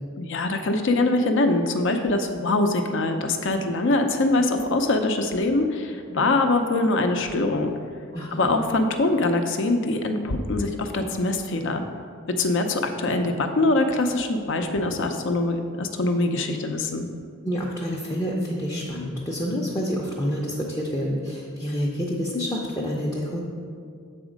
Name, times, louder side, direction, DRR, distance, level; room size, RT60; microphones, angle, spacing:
voice 1, 0.2-7.7 8.3-11.8 12.4-17.1, left 2 dB, 60° left, 6 dB, 0.5 m, -23 dB
voice 2, 8.1-8.5 17.4-23.4, equal, 15° left, -4 dB, 0.6 m, -28 dB
7.1 x 4.2 x 5.0 m, 2.2 s
head